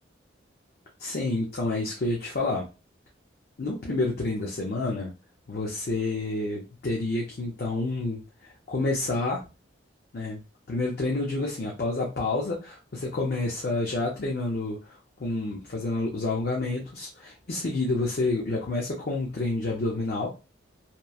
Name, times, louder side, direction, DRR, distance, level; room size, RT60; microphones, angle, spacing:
voice 1, 1.0-2.7 3.6-5.1 5.5-9.5 10.1-10.4 10.7-20.4, left 2 dB, 55° left, -2 dB, 0.6 m, -29 dB
2.9 x 2.1 x 2.3 m, 0.30 s
head